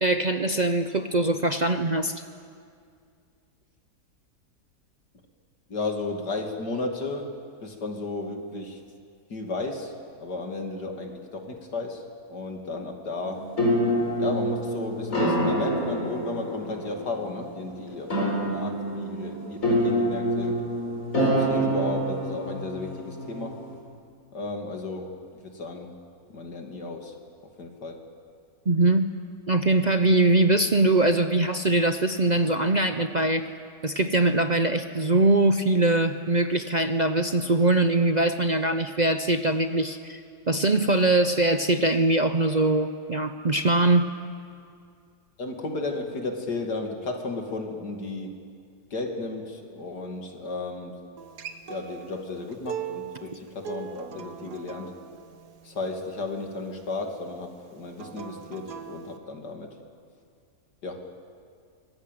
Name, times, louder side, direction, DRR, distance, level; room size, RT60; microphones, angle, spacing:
voice 1, 0.0-2.2 28.7-29.1 29.5-33.5 33.8-40.2 40.5-44.1, right 2 dB, 40° right, 8 dB, 0.7 m, -22 dB
voice 2, 5.7-7.4 7.6-8.8 9.3-9.9 10.2-12.0 12.3-13.5 14.2-20.7 21.1-23.6 24.3-26.0 26.3-27.2 27.6-28.1 45.4-48.4 48.9-51.0 51.7-55.0 55.6-59.7 60.8-61.1, left 3 dB, 90° left, 3 dB, 3.0 m, -34 dB
sound 1, 13.2-23.8, equal, 55° left, 5.0 m, -27 dB
Acoustic guitar, 51.2-56.4 57.9-59.2, right 8 dB, 80° right, 1.8 m, -40 dB
24.5 x 20.5 x 9.2 m, 2.3 s
omnidirectional pair, 1.7 m